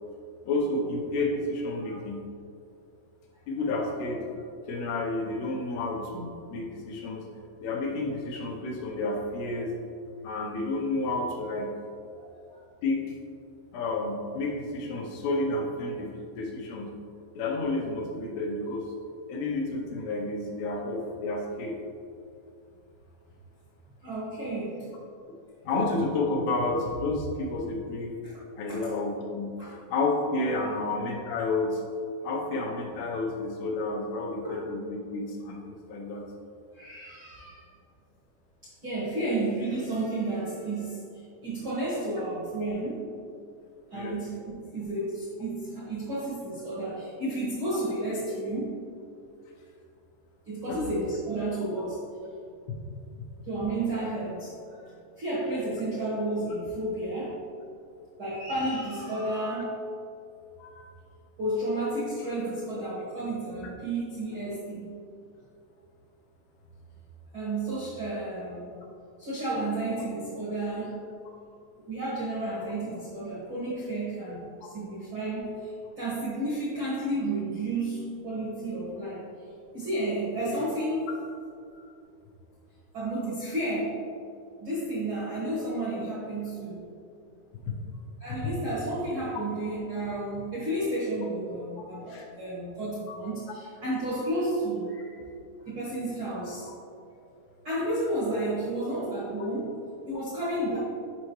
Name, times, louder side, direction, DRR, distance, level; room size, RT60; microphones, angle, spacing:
voice 1, 0.5-2.2 3.5-4.2 4.7-7.3 7.6-9.7 10.2-11.7 12.8-13.2 13.7-16.9 17.3-18.9 19.3-21.8 25.6-28.1 28.6-29.5 29.9-31.8 32.2-36.2 43.9-44.2 50.7-50.8 52.7-52.8 60.6-60.9 91.8-92.3 93.1-93.2, left 2 dB, 80° left, -1 dB, 2.7 m, -30 dB
voice 2, 12.1-12.6 24.0-24.9 28.2-28.4 28.7-29.0 29.6-29.8 30.6-30.7 32.2-32.3 34.4-34.6 36.7-37.6 38.6-41.0 41.4-43.1 43.9-48.8 50.4-52.0 53.4-54.5 54.8-54.9 55.2-57.4 58.2-59.8 61.4-64.9 67.3-68.8 69.2-71.0 71.9-79.2 79.7-81.1 81.7-81.8 82.9-84.0 84.6-86.9 88.2-95.1 95.6-96.7 97.6-100.8, right 1 dB, 65° right, -9 dB, 1.3 m, -32 dB
8.4 x 5.5 x 3.1 m, 2.5 s
omnidirectional pair, 4.9 m